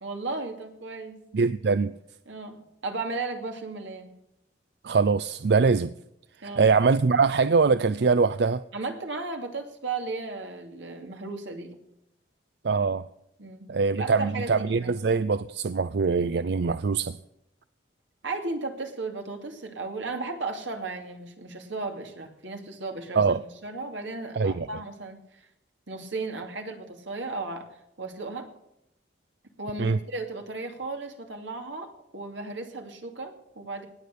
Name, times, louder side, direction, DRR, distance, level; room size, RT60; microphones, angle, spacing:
voice 1, 0.0-1.2 2.3-4.1 6.4-6.7 8.7-11.8 13.4-15.0 18.2-25.4 25.9-27.7 28.0-28.5 29.6-33.9, right 3 dB, 90° right, 2.7 m, -35 dB
voice 2, 1.3-1.9 4.8-5.9 6.6-8.6 12.6-13.1 13.7-17.2 23.2-23.4 24.3-24.7 29.8-30.0, right 4 dB, 65° right, 0.4 m, -23 dB
19.0 x 8.4 x 6.8 m
head